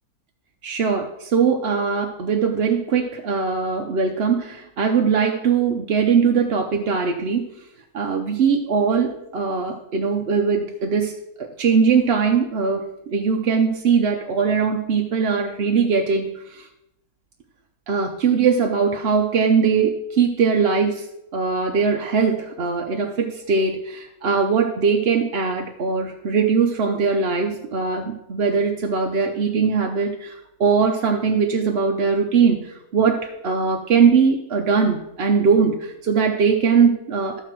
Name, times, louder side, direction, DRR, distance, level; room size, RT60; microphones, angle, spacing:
voice 1, 0.6-7.4 7.9-11.1 11.4-16.7 17.9-21.1 21.3-37.4, right 5 dB, 50° right, 2 dB, 0.8 m, -21 dB
14.5 x 5.8 x 4.6 m, 0.84 s
omnidirectional pair, 1.6 m